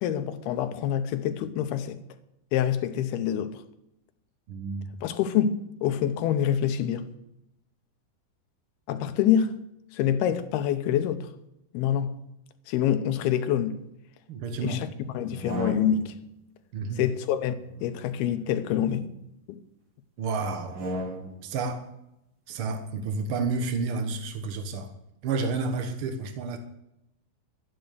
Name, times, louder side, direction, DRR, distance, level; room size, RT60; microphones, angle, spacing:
voice 1, 0.0-2.0 2.5-3.6 5.0-7.1 8.9-9.5 9.9-11.3 11.7-12.2 12.7-13.8 14.6-14.9 15.1-16.1 17.0-17.6 17.8-19.1 19.5-19.6, left 9 dB, 90° left, 2.8 m, -26 dB
voice 2, 4.5-4.9 14.3-14.8 16.7-17.0 20.2-20.8 21.4-21.9 22.5-24.9 25.2-26.6, right 4 dB, 75° right, 1.2 m, -30 dB
sound 1, 15.2-16.3 17.6-19.2 20.5-21.5, equal, 45° right, 1.8 m, -37 dB
13.0 x 10.5 x 6.7 m
omnidirectional pair, 4.4 m